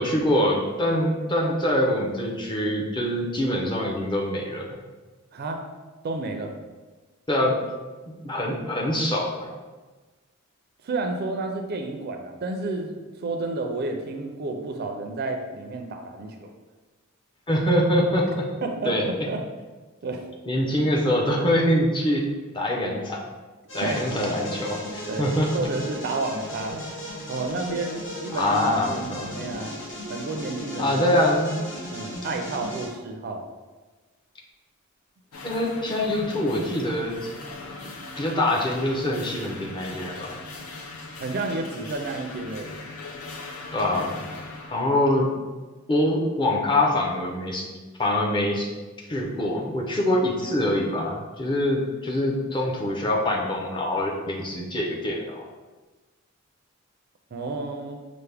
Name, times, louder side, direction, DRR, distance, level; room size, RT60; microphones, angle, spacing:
voice 1, 0.0-4.6 7.3-7.6 8.2-9.5 17.5-18.5 18.8-19.0 20.5-22.2 22.5-23.2 23.7-25.5 28.3-29.3 30.8-31.5 35.4-37.2 38.2-40.3 43.7-44.3 44.7-45.3 45.9-47.7 48.0-48.7 49.0-55.4, left 1 dB, 20° left, -2 dB, 0.6 m, -24 dB
voice 2, 5.3-5.6 6.0-6.5 10.8-16.5 18.6-19.4 20.0-20.2 23.8-24.0 25.1-26.8 27.3-29.8 30.1-31.0 31.9-33.4 41.2-42.8 57.3-58.0, right 3 dB, 45° right, 4 dB, 0.4 m, -31 dB
sound 1, 23.7-32.9, equal, 60° left, 1.1 m, -36 dB
sound 2, 35.3-44.8, left 3 dB, 80° left, 0.6 m, -40 dB
5.6 x 2.1 x 3.3 m, 1.3 s
head